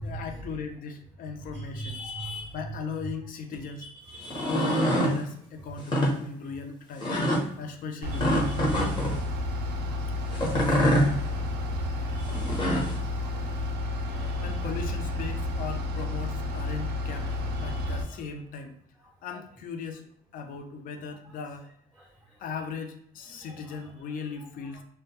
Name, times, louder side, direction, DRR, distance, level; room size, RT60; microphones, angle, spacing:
voice 1, 0.0-2.0 2.5-3.8 4.5-7.1 7.6-8.6 10.7-10.8 14.4-17.3 17.6-18.8 19.2-20.1 20.3-21.7 22.4-24.8, left 5 dB, 55° left, 5 dB, 0.4 m, -37 dB
voice 2, 1.7-2.5 4.1-4.8 8.5-8.9 10.7-10.8 12.2-12.9 14.1-14.5 17.6-17.9, equal, 5° right, -2 dB, 0.4 m, -40 dB
sound 1, 4.2-5.1 5.8-6.1 7.0-7.4 8.2-9.1 10.3-11.1 12.3-12.9, equal, 25° left, 0.8 m, -25 dB
Bus / Idling, 8.0-18.0, left 2 dB, 70° right, 0.5 m, -31 dB
2.2 x 2.1 x 2.8 m, 0.66 s
cardioid pair, 110°, 17 cm